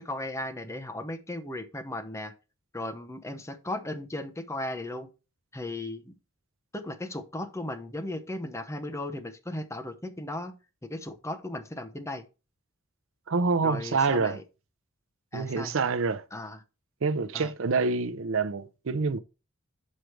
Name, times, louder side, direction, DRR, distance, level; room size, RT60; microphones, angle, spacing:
voice 1, 0.0-2.3 2.7-5.1 5.5-6.2 6.7-10.5 10.8-12.2 13.6-14.4 15.3-15.8 16.3-16.6 17.3-17.5, left 1 dB, 15° left, 0.9 m, -36 dB
voice 2, 13.3-14.4 15.3-16.2 17.0-19.2, right 4 dB, 70° right, 0.6 m, -27 dB
6.4 x 5.1 x 4.5 m
head